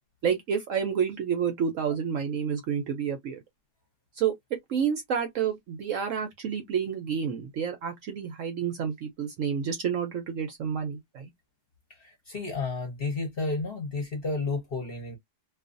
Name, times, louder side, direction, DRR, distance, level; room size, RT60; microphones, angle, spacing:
voice 1, 0.2-3.4 4.1-11.3, right 7 dB, 65° right, 0.8 m, -29 dB
voice 2, 12.0-15.2, left 3 dB, 45° left, 0.9 m, -32 dB
2.5 x 2.4 x 2.5 m
omnidirectional pair, 1.7 m